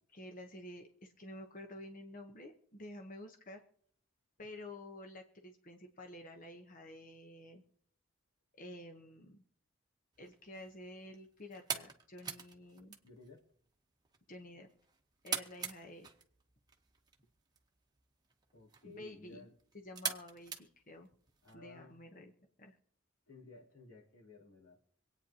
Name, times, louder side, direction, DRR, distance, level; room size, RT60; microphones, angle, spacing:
voice 1, 0.1-3.6 4.4-7.6 8.6-9.4 10.2-13.0 14.3-14.7 15.2-16.1 18.8-19.5 19.7-21.1 21.5-22.3 22.6-22.7, left 1 dB, 40° left, 4 dB, 1.0 m, -50 dB
sound 1, 10.1-21.5, right 6 dB, 20° right, 1.0 m, -46 dB
voice 2, 13.0-13.5 18.5-19.5 21.4-22.0 23.3-24.8, left 3 dB, 90° left, -3 dB, 3.0 m, -56 dB
25.5 x 9.0 x 2.8 m, 0.64 s
head